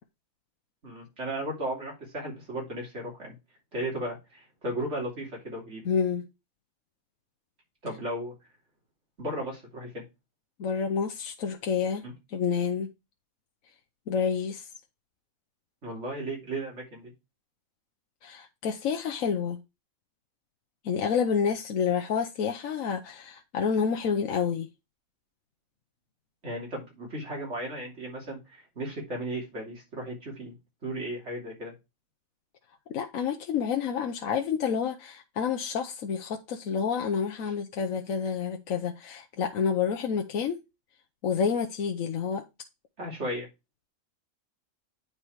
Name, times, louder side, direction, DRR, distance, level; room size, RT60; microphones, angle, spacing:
voice 1, 0.8-3.3 3.7-5.8 7.8-8.3 9.2-10.0 12.0-12.1 15.8-17.1 26.4-30.6 30.8-31.7 43.0-43.5, right 1 dB, 55° right, 3.4 m, -35 dB
voice 2, 5.8-6.2 10.6-12.1 12.3-12.9 14.1-14.7 18.2-19.6 20.8-24.7 32.9-40.6 41.2-42.4, left 6 dB, 70° left, 1.2 m, -29 dB
9.2 x 4.4 x 4.7 m
omnidirectional pair, 1.5 m